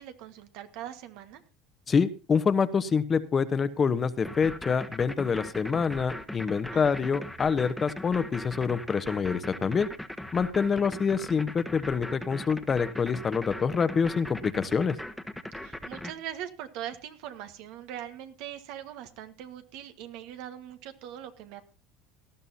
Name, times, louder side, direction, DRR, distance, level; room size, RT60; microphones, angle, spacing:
voice 1, 0.0-1.4 6.7-7.2 15.6-21.6, right 10 dB, 70° right, 8 dB, 1.6 m, -41 dB
voice 2, 1.9-9.9 10.3-14.9, left 5 dB, 30° left, 12 dB, 1.0 m, -26 dB
sound 1, 4.2-16.1, left 1 dB, 5° left, 1.3 m, -39 dB
18.5 x 12.5 x 2.8 m, 0.32 s
supercardioid pair, 110°, 0 cm